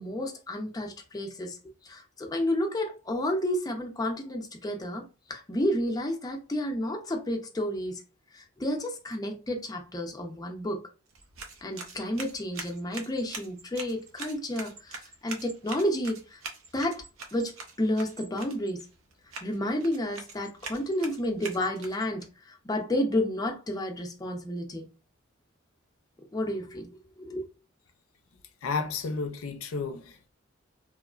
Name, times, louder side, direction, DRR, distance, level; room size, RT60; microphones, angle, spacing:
voice 1, 0.0-1.6 1.8-5.0 5.3-8.0 8.3-10.8 11.6-16.4 16.7-17.0 17.3-18.8 19.4-24.9 26.3-27.5, left 1 dB, 20° left, 0.5 m, -31 dB
sound 1, 11.1-22.2, right 4 dB, 80° right, 0.6 m, -44 dB
voice 2, 28.6-30.3, left 4 dB, 85° left, 0.4 m, -32 dB
3.0 x 2.0 x 2.4 m
head